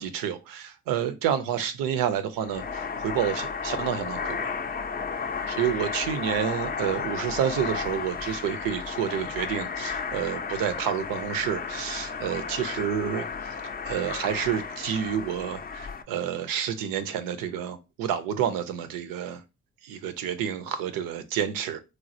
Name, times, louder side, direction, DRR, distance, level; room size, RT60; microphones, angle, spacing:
voice 1, 0.0-4.5 5.5-13.3 13.8-19.4 19.8-21.8, right 9 dB, 85° right, 0.5 m, -29 dB
sound 1, 2.4-16.0, left 5 dB, 30° left, 0.4 m, -33 dB
3.0 x 2.3 x 2.6 m
supercardioid pair, 45°, 33 cm